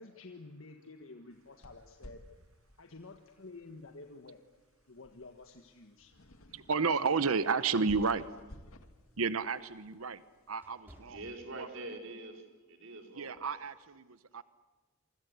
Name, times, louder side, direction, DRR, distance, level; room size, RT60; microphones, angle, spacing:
voice 1, 0.0-2.2 2.8-4.4 4.9-6.1 6.9-7.3 7.8-8.0, left 3 dB, 70° left, 5 dB, 1.6 m, -51 dB
sound 1, 1.3-10.7, left 1 dB, 85° left, 2.0 m, -57 dB
voice 2, 6.5-8.2 9.2-10.2 10.5-11.2 11.6-11.7 13.1-14.4, right 4 dB, 85° right, 15 dB, 1.0 m, -31 dB
sound 2, 10.5-12.1 12.5-12.7 13.3-13.6, equal, 10° right, 5.9 m, -61 dB
voice 3, 11.0-13.5, right 2 dB, 65° right, 4 dB, 4.5 m, -45 dB
27.5 x 25.0 x 8.2 m, 1.3 s
head